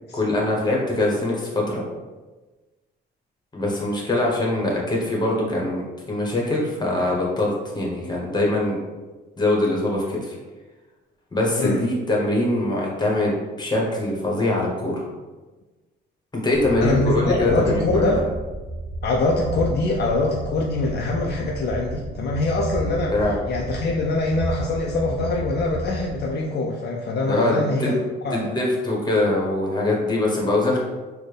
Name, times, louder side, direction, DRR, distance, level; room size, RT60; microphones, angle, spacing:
voice 1, 0.1-1.8 3.5-5.8 6.1-8.8 9.4-10.3 11.3-15.0 16.4-18.2 23.1-23.4 27.3-27.9 28.3-30.8, left 2 dB, 20° left, -2 dB, 1.1 m, -23 dB
sound 1, 16.5-26.3, right 2 dB, 35° right, 0.5 m, -32 dB
voice 2, 16.8-18.2 19.0-28.5, left 2 dB, 55° left, 0 dB, 0.4 m, -24 dB
4.2 x 2.2 x 3.3 m, 1.2 s
cardioid pair, 90°, 20 cm